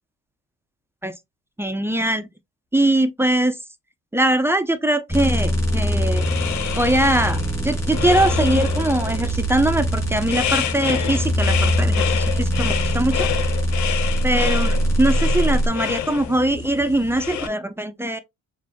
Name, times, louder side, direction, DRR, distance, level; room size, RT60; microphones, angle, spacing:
voice 1, 1.6-2.3 2.7-3.6 4.1-6.2 6.8-7.4 7.6-13.3 14.2-18.2, right 1 dB, 10° right, 0.7 m, -21 dB
sound 1, 5.1-15.7, equal, 10° left, 3.0 m, -22 dB
sound 2, 6.0-17.5, left 9 dB, 70° left, 0.7 m, -29 dB
6.7 x 2.7 x 2.2 m
cardioid pair, 90°, 30 cm